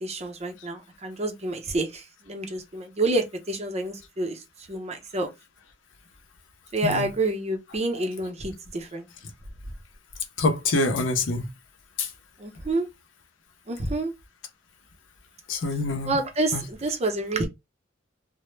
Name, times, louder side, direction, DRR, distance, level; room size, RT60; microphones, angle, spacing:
voice 1, 0.0-4.4 4.7-5.3 6.7-9.1 12.4-12.9 13.7-14.1 16.0-17.5, right 2 dB, 35° right, 0.6 m, -28 dB
voice 2, 6.8-7.1 7.9-8.0 10.4-11.5 12.0-12.1 15.5-16.2 16.5-16.6, left 2 dB, 80° left, 0.5 m, -25 dB
2.0 x 2.0 x 3.1 m
head